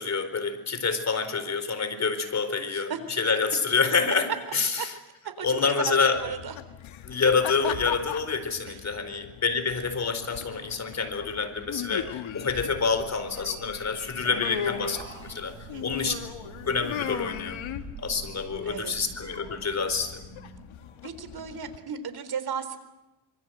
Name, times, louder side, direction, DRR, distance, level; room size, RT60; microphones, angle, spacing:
voice 1, 0.0-2.9 3.2-4.7 5.4-6.2 7.0-15.5 15.8-16.1 16.7-17.6 18.0-20.2, left 5 dB, 30° left, 9 dB, 4.5 m, -27 dB
voice 2, 5.2-6.6 8.7-8.8 15.7-16.1 18.6-19.1 21.0-22.8, right 7 dB, 45° right, 11 dB, 4.0 m, -35 dB
sound 1, 6.2-21.8, left 9 dB, 65° left, 1.8 m, -38 dB
sound 2, 12.4-20.7, right 6 dB, 90° right, 7.3 m, -46 dB
26.0 x 23.5 x 7.9 m, 0.97 s
cardioid pair, 115°, 50 cm